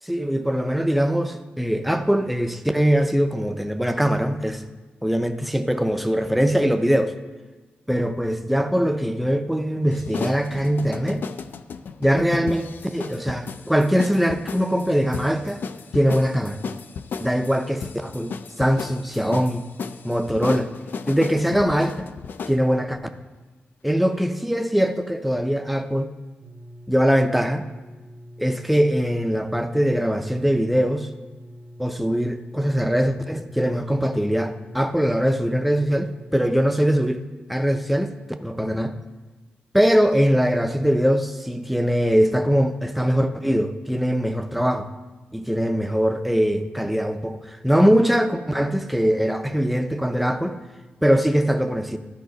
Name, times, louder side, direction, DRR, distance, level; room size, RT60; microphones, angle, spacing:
voice 1, 0.0-4.6 5.0-7.1 7.9-11.2 12.0-15.6 15.9-16.6 17.2-19.7 20.0-20.7 21.1-22.1 22.5-23.0 23.8-26.1 26.9-27.7 28.4-31.1 31.8-38.1 38.4-39.0 39.7-44.9 45.3-50.6 51.0-52.0, equal, ahead, 7 dB, 0.4 m, -22 dB
sound 1, 9.9-22.6, left 5 dB, 65° left, 0.3 m, -34 dB
sound 2, 26.4-36.8, equal, 80° right, 1.1 m, -44 dB
12.5 x 5.0 x 3.9 m, 1.2 s
wide cardioid pair, 150°, 4 cm